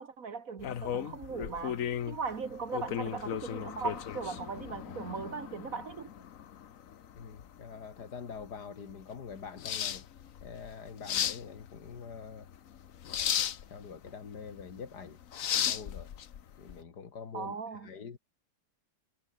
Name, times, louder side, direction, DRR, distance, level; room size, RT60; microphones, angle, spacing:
voice 1, 0.0-6.1 17.3-17.9, right 5 dB, 55° right, 1.9 m, -39 dB
sound 1, 0.6-16.8, left 9 dB, 60° left, 1.3 m, -36 dB
voice 2, 7.1-10.1 10.4-12.5 13.1-13.3 13.6-15.2 15.6-16.1 16.6-17.6 17.8-18.2, left 6 dB, 80° left, 2.6 m, -45 dB
omnidirectional pair, 1.7 m